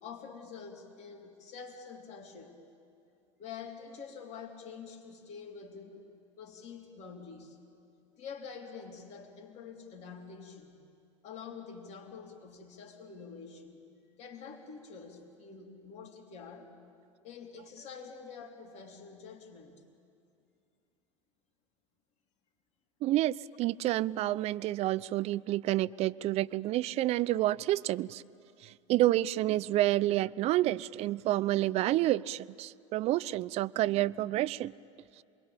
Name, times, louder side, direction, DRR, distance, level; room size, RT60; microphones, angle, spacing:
voice 1, 0.0-2.6 3.4-6.0 6.4-7.6 8.2-10.8 11.2-13.8 14.2-16.7 17.2-19.7, left 6 dB, 45° left, 3 dB, 3.7 m, -47 dB
voice 2, 23.0-28.2 28.6-34.7, right 15 dB, 40° right, 19 dB, 0.5 m, -29 dB
28.0 x 21.5 x 8.8 m, 2.5 s
hypercardioid pair, 85°, 17 cm